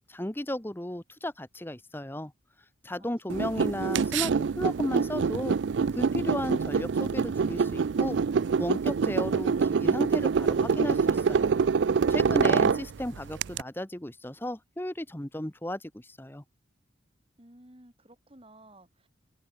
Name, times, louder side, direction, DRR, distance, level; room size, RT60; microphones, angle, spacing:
voice 1, 0.0-2.3 2.8-4.3 4.6-5.6 5.9-8.2 8.6-11.5 12.1-16.4, left 1 dB, 10° left, 1.0 m, -34 dB
voice 2, 3.0-3.6 17.4-19.1, right 1 dB, 25° right, 3.1 m, -54 dB
sound 1, 3.3-13.6, right 5 dB, 65° right, 0.4 m, -25 dB
head